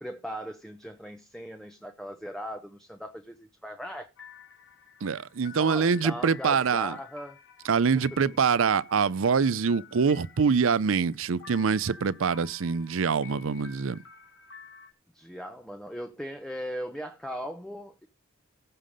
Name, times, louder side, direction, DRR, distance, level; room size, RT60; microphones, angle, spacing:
voice 1, 0.0-4.1 5.5-7.4 7.9-8.2 15.1-18.1, equal, ahead, 0.8 m, -38 dB
sound 1, 4.2-14.9, left 6 dB, 65° left, 3.3 m, -51 dB
voice 2, 5.0-6.9 7.6-14.0, right 5 dB, 75° right, 0.5 m, -25 dB
15.0 x 5.8 x 5.1 m
head